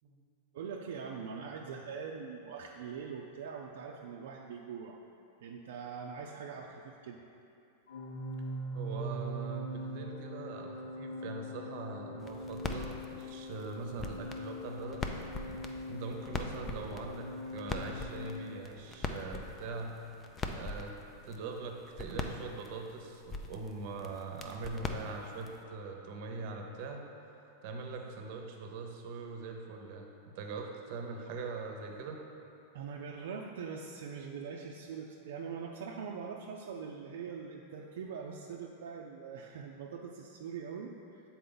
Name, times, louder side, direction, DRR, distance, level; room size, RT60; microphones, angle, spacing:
voice 1, 0.5-5.0 5.4-7.2 32.7-41.2, right 6 dB, 75° right, 0 dB, 0.4 m, -42 dB
Organ, 7.9-18.7, equal, 75° left, 0.6 m, -42 dB
voice 2, 8.7-15.0 15.4-15.5 15.9-19.9 20.5-20.9 21.2-27.0 27.6-30.1 30.3-32.2, right 4 dB, 55° right, 3 dB, 0.8 m, -42 dB
sound 1, 12.2-25.6, left 3 dB, 20° left, 0.4 m, -42 dB
6.8 x 4.2 x 3.9 m, 2.7 s
supercardioid pair, 140°, 0 cm